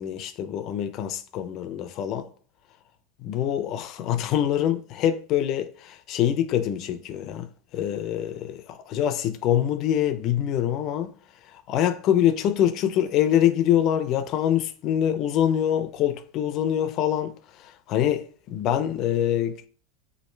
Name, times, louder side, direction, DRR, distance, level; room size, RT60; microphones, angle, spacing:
voice 1, 0.0-2.3 3.2-7.5 7.7-8.6 8.9-11.1 11.7-17.3 17.9-19.7, left 10 dB, 40° left, 0.3 m, -24 dB
3.1 x 2.5 x 3.1 m
supercardioid pair, 150°, 0 cm